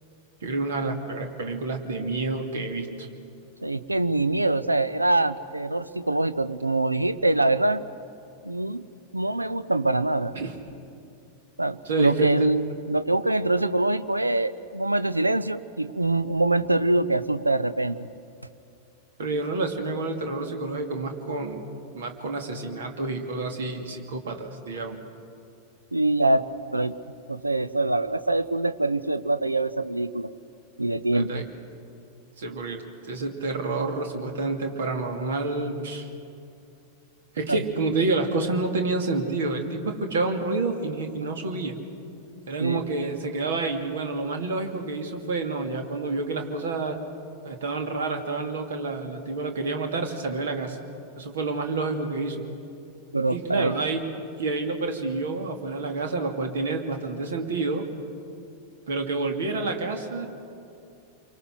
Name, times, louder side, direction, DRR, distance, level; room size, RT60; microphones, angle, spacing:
voice 1, 0.4-3.1 10.3-10.6 11.8-12.5 19.2-21.6 21.9-25.0 31.1-31.4 32.4-36.1 37.3-41.8 42.5-47.0 47.4-50.8 51.2-52.5 53.3-54.1 54.4-57.9 58.9-60.3, right 3 dB, 65° right, 4 dB, 2.5 m, -29 dB
voice 2, 3.6-7.8 8.4-8.8 9.1-10.3 11.6-18.1 25.9-26.5 26.7-27.0 27.3-30.3 30.8-31.4 37.5-37.6 42.6-42.8 53.1-53.8, right 2 dB, 85° right, 14 dB, 0.7 m, -24 dB
28.0 x 24.0 x 6.3 m, 2.6 s
figure-of-eight pair, 90°, 0 cm